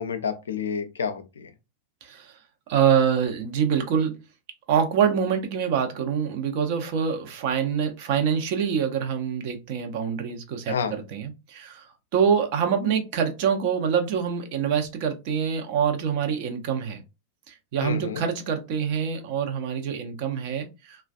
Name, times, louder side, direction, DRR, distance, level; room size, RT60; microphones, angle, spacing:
voice 1, 0.0-1.5 10.7-11.0 17.8-18.2, left 6 dB, 70° left, 0.4 m, -29 dB
voice 2, 2.0-2.3 2.7-4.1 4.7-11.8 12.1-17.0 17.5-21.0, right 7 dB, 45° right, 0.6 m, -25 dB
3.2 x 2.2 x 2.3 m
figure-of-eight pair, 90°, 0 cm